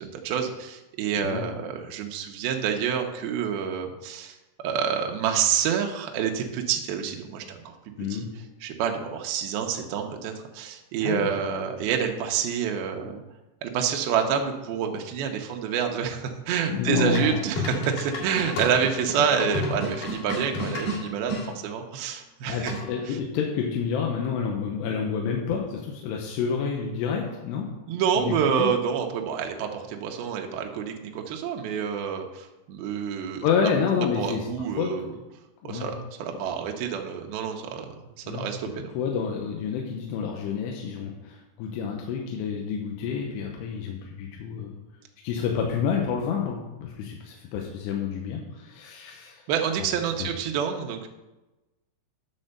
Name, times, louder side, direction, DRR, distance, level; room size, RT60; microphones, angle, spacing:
voice 1, 0.0-7.7 8.1-8.3 8.6-13.2 13.6-22.7 23.1-23.2 27.9-33.7 34.0-35.0 35.6-38.9 49.5-51.1, right 7 dB, 80° right, 3 dB, 2.3 m, -28 dB
voice 2, 16.7-17.4 19.2-19.3 22.5-27.7 28.2-28.7 33.4-34.5 34.8-35.2 35.6-35.9 38.3-38.5 38.9-44.7 45.2-49.4 50.2-50.3, left 6 dB, 80° left, 0 dB, 2.8 m, -29 dB
sound 1, 17.2-21.5 22.7-23.1, left 1 dB, 55° left, 3.3 m, -31 dB
9.8 x 4.3 x 6.7 m, 1.0 s
omnidirectional pair, 5.3 m